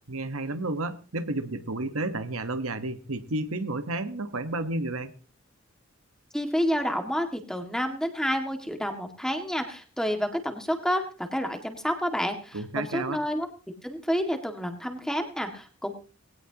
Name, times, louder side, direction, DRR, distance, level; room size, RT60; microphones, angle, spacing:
voice 1, 0.1-5.1 12.5-13.2, right 2 dB, 80° right, 10 dB, 1.3 m, -31 dB
voice 2, 6.3-13.5 13.8-15.9, equal, 5° left, 5 dB, 1.9 m, -29 dB
20.0 x 17.5 x 2.9 m, 0.34 s
head